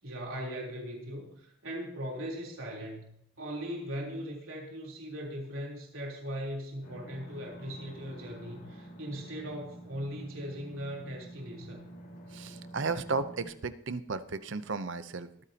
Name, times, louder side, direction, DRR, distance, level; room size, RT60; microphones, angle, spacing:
voice 1, 0.0-11.8, equal, 80° right, -2 dB, 3.5 m, -39 dB
sound 1, 6.8-13.4, right 1 dB, 60° left, 4.2 m, -48 dB
voice 2, 12.3-15.3, right 4 dB, 60° right, 13 dB, 0.7 m, -34 dB
22.5 x 9.3 x 2.9 m, 0.73 s
head